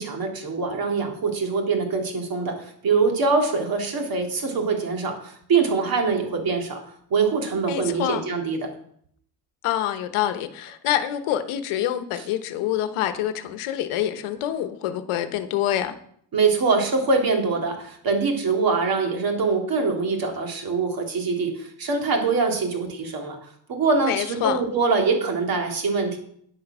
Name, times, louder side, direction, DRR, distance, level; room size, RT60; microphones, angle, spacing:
voice 1, 0.0-6.8 7.1-8.7 16.3-23.4 23.7-26.2, right 4 dB, 45° right, 2.7 m, -23 dB
voice 2, 7.7-8.2 9.6-15.9 24.0-24.6, left 11 dB, 90° left, 1.1 m, -26 dB
10.0 x 7.8 x 6.1 m
cardioid pair, 140°, 49 cm